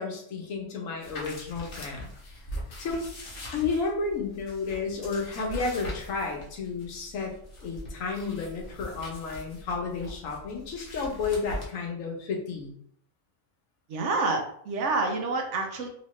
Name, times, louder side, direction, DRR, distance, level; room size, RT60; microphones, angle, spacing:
voice 1, 0.0-2.1 2.8-3.0 3.5-7.3 7.6-12.7, left 4 dB, 80° left, 1 dB, 1.2 m, -32 dB
sound 1, 1.0-11.7, equal, 45° left, 1.0 m, -42 dB
voice 2, 13.9-15.9, right 3 dB, 70° right, 3 dB, 0.9 m, -28 dB
3.0 x 2.9 x 3.1 m, 0.67 s
omnidirectional pair, 1.3 m